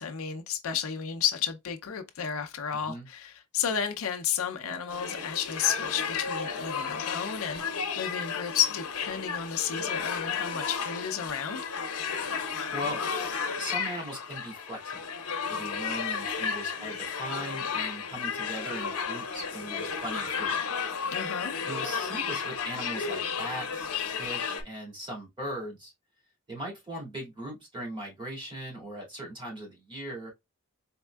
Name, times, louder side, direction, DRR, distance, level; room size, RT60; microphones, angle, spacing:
voice 1, 0.0-7.6 8.0-11.6 21.1-21.6, left 8 dB, 65° left, 0.5 m, -32 dB
voice 2, 2.7-3.1 3.7-3.8 12.7-13.0 13.6-15.1 15.4-20.6 21.7-23.9 24.1-25.9 26.5-30.3, equal, 20° right, 2.1 m, -39 dB
sound 1, 4.9-24.6, left 6 dB, 80° left, 0.9 m, -33 dB
4.3 x 3.5 x 2.3 m
head